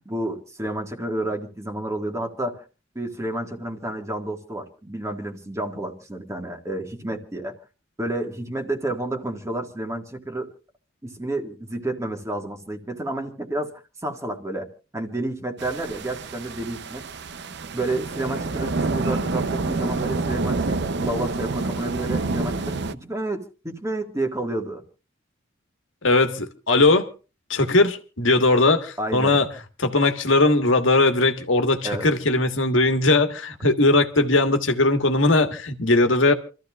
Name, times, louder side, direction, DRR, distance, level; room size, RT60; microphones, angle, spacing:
voice 1, 0.0-2.6 2.9-7.5 8.0-10.5 11.0-13.7 14.0-14.7 14.9-17.0 17.7-24.8 29.0-29.4 31.8-32.1, right 1 dB, 15° right, 1.7 m, -30 dB
sound 1, 15.6-22.9, right 3 dB, 60° right, 0.6 m, -28 dB
voice 2, 26.0-27.1 27.5-29.5 29.8-36.3, left 2 dB, 85° left, 1.5 m, -19 dB
28.5 x 14.0 x 2.4 m
head